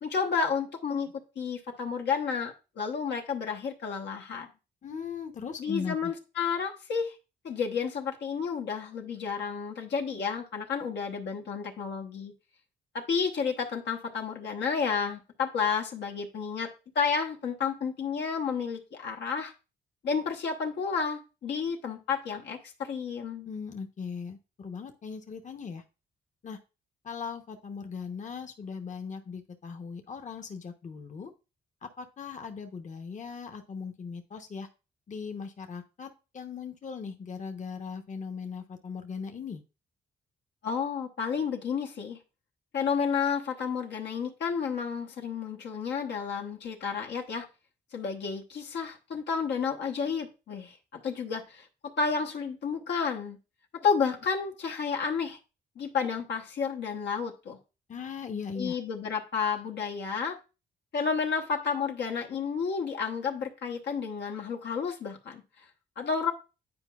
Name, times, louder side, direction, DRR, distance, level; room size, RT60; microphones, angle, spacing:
voice 1, 0.0-4.5 5.6-7.2 7.4-12.3 12.9-16.7 16.9-19.5 20.0-23.5 40.6-42.2 42.7-47.5 47.9-53.4 53.7-55.4 55.8-57.6 58.6-60.4 60.9-65.6 66.0-66.3, left 6 dB, 70° left, 2 dB, 1.0 m, -31 dB
voice 2, 4.8-6.1 23.5-25.8 26.4-26.6 27.0-31.3 31.8-34.7 35.1-36.1 36.3-39.6 57.9-58.8, left 5 dB, 45° left, 5 dB, 0.9 m, -39 dB
9.6 x 4.6 x 2.4 m, 0.31 s
cardioid pair, 80°, 18 cm